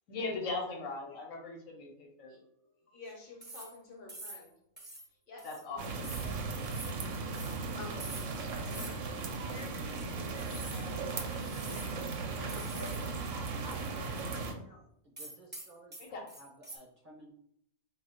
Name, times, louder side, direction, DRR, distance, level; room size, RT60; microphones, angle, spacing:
voice 1, 0.1-2.3 5.4-5.8 16.0-16.2, left 3 dB, 75° left, 0 dB, 1.3 m, -38 dB
voice 2, 2.3-4.5 5.3-5.5 6.6-7.0 7.5-8.2 8.7-8.9 9.5-9.8 10.2-11.8 12.2-13.3 14.0-14.8, left 4 dB, 50° left, 0 dB, 0.8 m, -51 dB
sound 1, 3.4-3.8 4.1-4.5 4.8-5.1 5.4-5.7 6.0-6.3 6.7-7.0 7.3-7.6 8.0-8.4 8.7-9.0 9.4-9.5 10.4-10.9 11.3-12.0 12.5-13.1 13.3-13.4 15.2-16.8, right 2 dB, 15° right, 0.5 m, -46 dB
sound 2, 5.8-14.5, right 4 dB, 75° right, 0.9 m, -37 dB
voice 3, 11.7-12.2 13.6-13.9 15.0-15.9 16.4-17.3, right 1 dB, 45° right, -1 dB, 0.7 m, -54 dB
2.8 x 2.7 x 4.3 m, 0.73 s
omnidirectional pair, 1.4 m